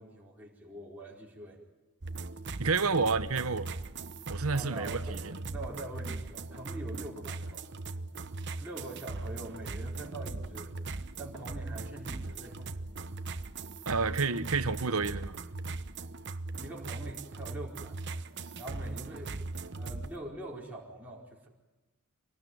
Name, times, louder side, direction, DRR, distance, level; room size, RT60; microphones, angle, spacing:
voice 1, 0.0-1.6 4.5-5.2 5.5-7.6 8.6-10.7 11.2-12.7 16.6-18.1 18.6-19.4 19.7-21.5, right 1 dB, 10° right, 4.6 m, -43 dB
sound 1, 2.0-20.2, right 3 dB, 55° right, 1.0 m, -39 dB
voice 2, 2.6-3.7 4.3-5.4 13.9-15.4, right 4 dB, 75° right, 1.2 m, -30 dB
25.5 x 18.5 x 9.4 m
head